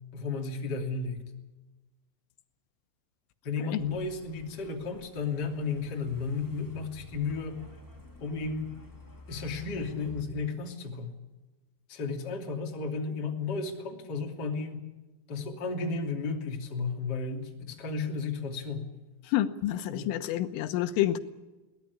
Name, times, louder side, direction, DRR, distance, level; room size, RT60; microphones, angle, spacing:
voice 1, 0.1-1.2 3.4-7.6 8.2-8.8 9.3-11.1 11.9-14.8 15.3-18.9 19.9-20.1, left 4 dB, 25° left, 2 dB, 2.5 m, -33 dB
Truck, 3.8-10.2, left 1 dB, 5° left, 2.3 m, -51 dB
voice 2, 19.3-21.2, left 13 dB, 85° left, 9 dB, 3.5 m, -28 dB
22.5 x 18.0 x 8.4 m, 1.1 s
omnidirectional pair, 5.7 m